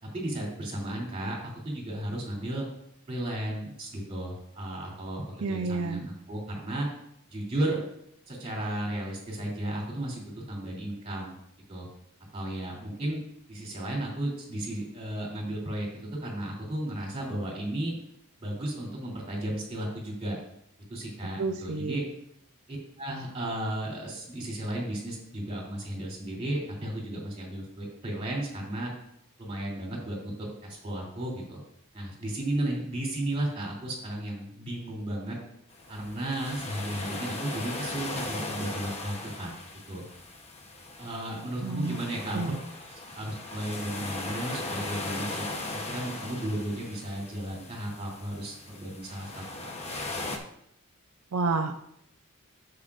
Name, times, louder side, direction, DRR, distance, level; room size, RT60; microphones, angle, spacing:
voice 1, 0.0-2.7 3.1-6.9 7.3-7.8 8.3-11.3 11.7-11.9 12.3-13.2 13.5-17.9 18.4-20.4 20.9-22.0 22.7-28.9 29.4-31.6 31.9-35.4 35.9-39.5 39.9-40.0 41.0-42.5 43.1-49.4, right 1 dB, 25° right, -2 dB, 2.9 m, -34 dB
voice 2, 5.4-6.0 21.2-22.0 41.6-42.0 42.3-42.6 51.3-51.7, right 4 dB, 80° right, 5 dB, 0.5 m, -30 dB
sound 1, 35.7-50.4, left 2 dB, 30° left, 0.9 m, -38 dB
9.8 x 7.6 x 2.5 m, 0.74 s
head